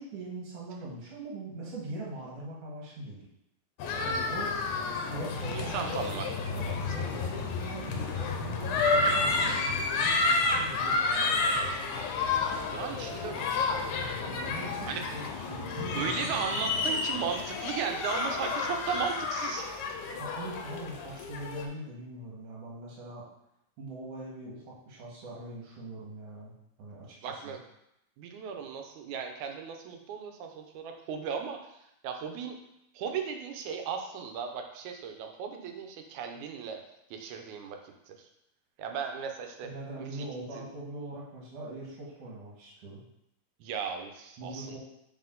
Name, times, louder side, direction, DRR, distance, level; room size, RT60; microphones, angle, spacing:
voice 1, 0.0-3.2 4.0-4.8 5.1-6.2 6.5-11.9 14.2-16.3 20.1-23.2 23.8-27.6 39.6-43.0 44.4-44.8, right 2 dB, 55° right, -4 dB, 2.5 m, -42 dB
sound 1, 3.8-21.7, left 3 dB, 90° left, 2.1 m, -30 dB
voice 2, 5.5-6.3 12.7-13.4 14.8-15.0 16.0-19.7 27.2-27.6 28.2-32.6 32.9-36.8 37.1-37.8 38.1-38.3 38.8-39.7 40.0-40.3 40.5-40.6 43.6-44.8, right 6 dB, 90° right, 4 dB, 2.2 m, -36 dB
5.6 x 5.1 x 3.8 m, 0.82 s
omnidirectional pair, 3.4 m